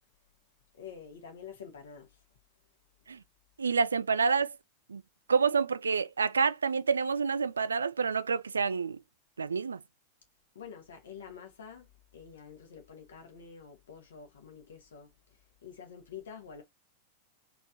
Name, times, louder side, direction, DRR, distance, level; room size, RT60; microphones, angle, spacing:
voice 1, 0.7-2.2 10.5-16.6, left 7 dB, 65° left, 2.2 m, -48 dB
voice 2, 3.6-4.5 4.9-5.0 5.3-9.0 9.4-9.8, right 5 dB, 75° right, 0.4 m, -28 dB
4.5 x 4.4 x 2.7 m
figure-of-eight pair, 90°, 0 cm